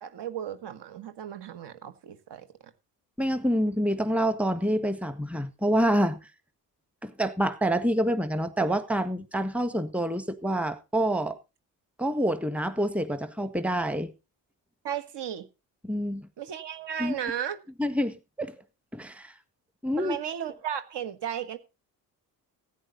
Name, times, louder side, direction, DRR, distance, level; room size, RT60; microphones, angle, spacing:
voice 1, 0.0-2.5 14.8-15.5 16.4-17.6 20.0-21.6, right 9 dB, 55° right, 1.6 m, -35 dB
voice 2, 3.2-6.2 7.0-11.4 12.0-14.1 15.8-16.3 17.0-17.1 17.8-18.5 18.9-19.3 19.8-20.1, equal, 5° right, 1.6 m, -27 dB
15.5 x 9.4 x 4.0 m
hypercardioid pair, 50°, 48 cm